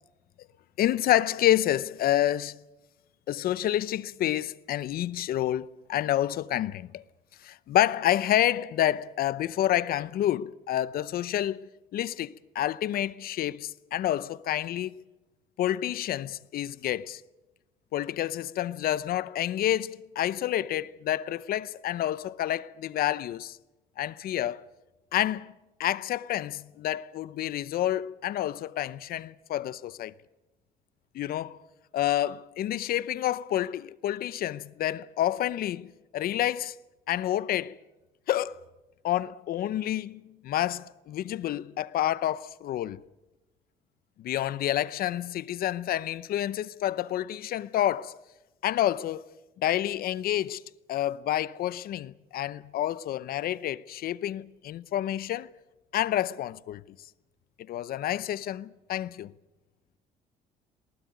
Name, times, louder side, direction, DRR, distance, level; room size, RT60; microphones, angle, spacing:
voice 1, 0.8-2.6 3.3-7.0 7.4-15.0 15.6-17.2 17.9-23.6 24.0-24.6 25.1-25.5 25.8-30.1 31.1-31.6 31.9-36.7 37.1-37.8 38.3-38.6 39.0-43.0 44.2-48.2 48.6-49.2 49.6-50.6 50.9-55.5 55.9-56.8 57.7-59.3, left 12 dB, 60° left, 0.7 m, -29 dB
20.0 x 18.5 x 9.5 m
cardioid pair, 110°, 17 cm